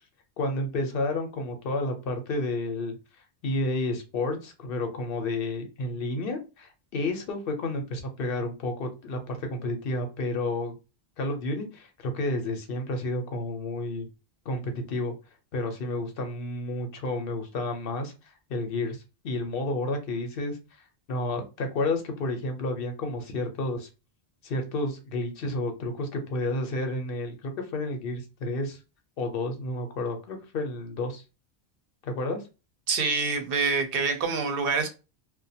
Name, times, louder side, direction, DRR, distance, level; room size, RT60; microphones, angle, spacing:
voice 1, 0.4-2.9 3.4-10.7 11.2-14.1 14.5-15.1 15.5-18.1 18.5-20.6 21.1-23.9 24.4-28.8 29.2-31.2 32.0-32.4, left 2 dB, 65° left, 0.8 m, -31 dB
voice 2, 32.9-34.9, right 4 dB, 65° right, 0.7 m, -26 dB
2.3 x 2.2 x 2.7 m
omnidirectional pair, 1.1 m